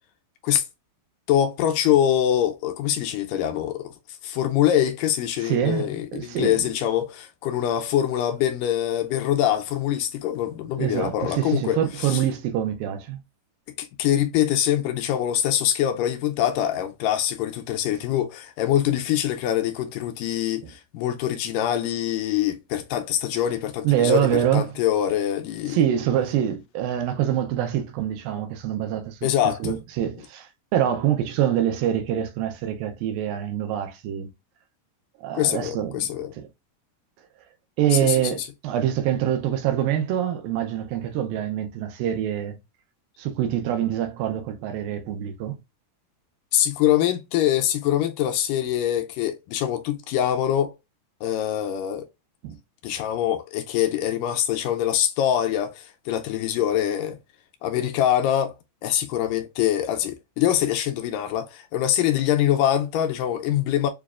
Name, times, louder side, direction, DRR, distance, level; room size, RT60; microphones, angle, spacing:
voice 1, 1.3-3.9 4.2-12.2 13.8-25.8 29.2-29.8 35.3-36.3 37.9-38.5 46.5-50.7 51.2-52.1 52.8-57.2 57.6-58.5 58.8-63.9, left 11 dB, 85° left, 1.9 m, -24 dB
voice 2, 5.4-6.7 10.8-13.2 20.6-20.7 23.8-24.7 25.7-29.2 29.6-34.3 35.2-36.1 36.4-36.5 37.8-42.6 43.2-45.6 52.4-52.6, right 10 dB, 80° right, 2.3 m, -25 dB
6.8 x 2.3 x 2.4 m
omnidirectional pair, 4.2 m